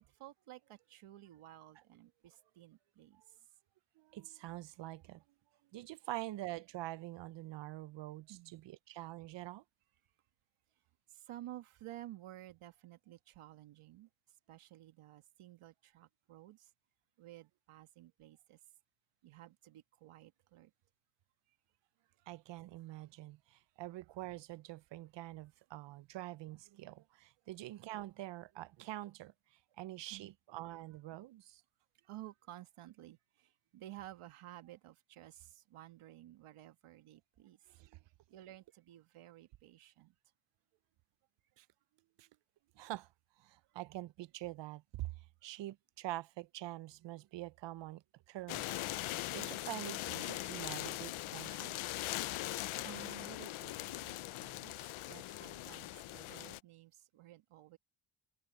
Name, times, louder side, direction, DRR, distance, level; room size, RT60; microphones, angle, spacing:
voice 1, 0.0-3.2 8.3-8.6 11.1-14.1 14.5-16.7 17.2-18.6 19.2-20.7 30.1-30.3 32.0-37.6 38.3-40.1 52.4-52.5 52.8-54.7 55.0-57.8, right 14 dB, 75° right, 1.5 m, -54 dB
voice 2, 4.0-5.2 5.7-9.6 22.3-29.3 29.8-31.6 37.8-38.0 41.6-41.7 42.2-42.3 42.8-43.1 43.4-45.1 45.4-48.0 48.3-48.7 49.0-51.8, right 15 dB, 60° right, 0.6 m, -45 dB
sound 1, 48.5-56.6, left 16 dB, 75° left, 0.7 m, -41 dB
cardioid pair, 125°, 50 cm